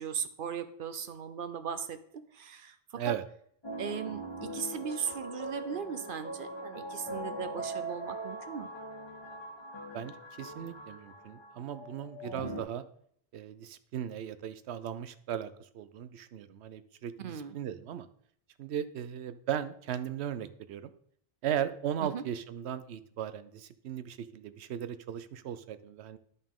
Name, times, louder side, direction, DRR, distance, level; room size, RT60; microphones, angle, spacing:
voice 1, 0.0-3.1 3.8-8.7 17.2-17.6 22.0-22.2, right 7 dB, 60° right, 11 dB, 0.7 m, -38 dB
sound 1, 3.6-12.6, right 1 dB, 25° left, 1.2 m, -41 dB
voice 2, 9.9-12.8 13.3-18.1 18.6-20.9 21.4-26.2, right 9 dB, 85° right, 13 dB, 0.9 m, -37 dB
11.0 x 5.4 x 3.6 m, 0.66 s
omnidirectional pair, 1.1 m